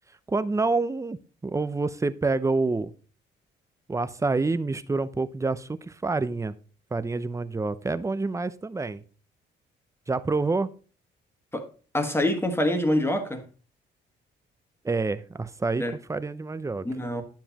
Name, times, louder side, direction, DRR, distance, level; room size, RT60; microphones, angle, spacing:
voice 1, 0.3-2.9 3.9-6.5 6.9-9.0 10.1-10.7 14.8-15.8 16.1-16.9, right 3 dB, 15° right, 0.5 m, -27 dB
voice 2, 11.9-13.4 15.8-15.9 16.8-17.2, left 1 dB, 10° left, 1.5 m, -25 dB
9.8 x 7.2 x 2.9 m
cardioid pair, 90°, 20 cm